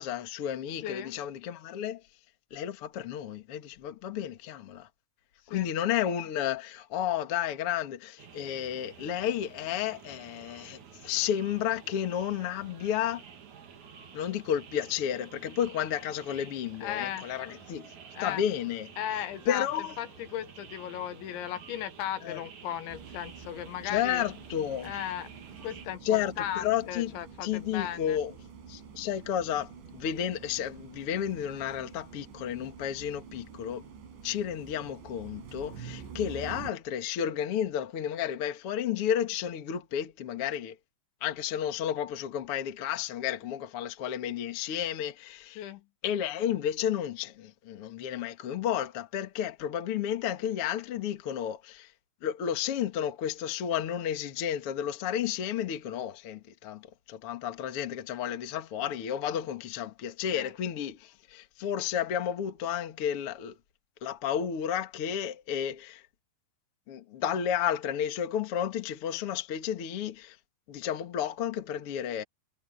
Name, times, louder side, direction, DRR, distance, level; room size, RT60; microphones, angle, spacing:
voice 1, 0.0-2.0 2.5-4.9 5.5-13.2 14.1-17.9 18.2-18.9 19.4-19.9 22.2-22.4 23.8-24.9 26.0-27.1 27.4-28.3 28.7-33.8 34.2-40.7 41.2-45.6 46.0-51.9 52.2-63.5 64.0-66.0 66.9-70.3 70.7-72.2, left 9 dB, 55° left, 1.6 m, -32 dB
voice 2, 0.8-1.1 5.5-5.7 16.8-17.3 18.1-18.4 19.0-19.7 20.0-24.2 24.8-25.3 25.6-28.2 45.6-45.8 60.3-60.5, left 11 dB, 80° left, 3.5 m, -36 dB
sound 1, 8.2-25.9, right 7 dB, 50° right, 3.1 m, -50 dB
sound 2, 22.9-36.7, right 6 dB, 75° right, 5.8 m, -47 dB
omnidirectional pair, 5.4 m